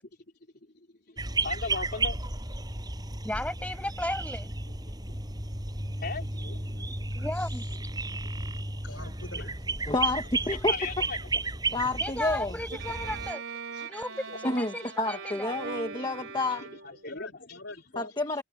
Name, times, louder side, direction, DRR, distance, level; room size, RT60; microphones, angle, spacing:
sound 1, 1.2-13.3, right 3 dB, 20° right, 7.2 m, -33 dB
voice 1, 1.4-2.2 6.0-6.3 8.9-9.0 9.3-9.5 9.9-10.0 10.5-11.2 11.7-11.9 14.8-14.9 16.5-17.6, left 4 dB, 50° left, 3.7 m, -37 dB
voice 2, 3.2-4.5 7.2-7.6 12.0-13.4 13.9-15.5, left 1 dB, 5° left, 7.2 m, -35 dB
voice 3, 6.4-7.5 8.8-9.7 10.2-10.6 17.0-18.1, left 2 dB, 70° left, 7.2 m, -46 dB
voice 4, 9.9-10.7 11.7-12.6 14.4-16.6 18.0-18.4, left 2 dB, 20° left, 1.9 m, -29 dB
Bowed string instrument, 12.7-17.1, right 5 dB, 80° right, 4.9 m, -40 dB
head